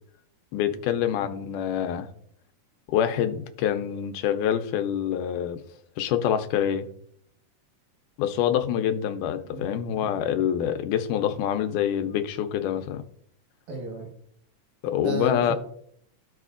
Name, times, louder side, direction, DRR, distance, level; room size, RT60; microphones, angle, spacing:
voice 1, 0.5-2.1 2.9-5.6 6.0-6.9 8.2-13.0 14.8-15.5, left 9 dB, 85° left, 8 dB, 2.2 m, -26 dB
voice 2, 13.7-14.1 15.0-15.6, right 4 dB, 70° right, 0 dB, 2.8 m, -33 dB
14.5 x 4.9 x 2.5 m, 0.67 s
omnidirectional pair, 3.6 m